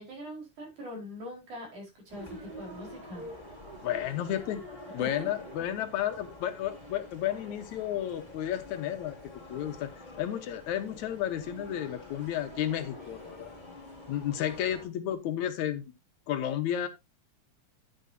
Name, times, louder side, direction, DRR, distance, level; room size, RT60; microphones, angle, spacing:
voice 1, 0.0-3.2 5.0-5.3, equal, 75° right, 5.9 m, -42 dB
sound 1, 2.1-14.9, left 2 dB, 15° left, 3.1 m, -47 dB
sound 2, 2.2-6.3, right 4 dB, 35° right, 2.2 m, -49 dB
voice 2, 3.8-4.7 4.9-9.2 9.5-9.9 10.2-13.5 14.1-15.9 16.3-16.9, left 11 dB, 75° left, 2.3 m, -32 dB
10.5 x 9.6 x 2.7 m
omnidirectional pair, 3.5 m